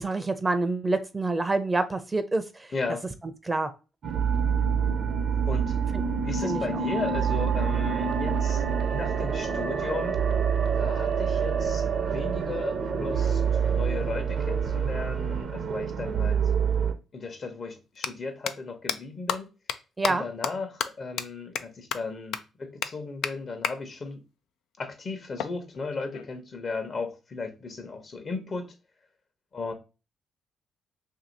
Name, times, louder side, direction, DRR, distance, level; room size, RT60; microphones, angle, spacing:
voice 1, 0.0-2.7 3.2-3.7 5.9-6.0 6.4-6.6 20.0-20.2, right 2 dB, 25° right, 0.6 m, -27 dB
voice 2, 2.7-3.1 5.5-5.8 6.2-8.6 8.9-10.2 10.7-13.4 13.7-16.4 17.1-19.5 20.1-24.2 24.8-28.7 29.5-29.7, left 4 dB, 50° left, 1.0 m, -35 dB
sound 1, 4.0-16.9, right 6 dB, 65° right, 0.7 m, -26 dB
sound 2, 16.7-16.8 17.9-18.1 18.5-18.6 18.9-19.0 19.3-19.4 19.7-19.8 20.0-20.1 20.4-20.5 20.8-20.9 21.2-21.3 21.6-21.7 21.9-22.0 22.3-22.4 22.8-22.9 23.2-23.3 23.6-23.7 25.4-26.4, left 8 dB, 75° left, 0.3 m, -30 dB
2.8 x 2.8 x 4.0 m
supercardioid pair, 60°, 0 cm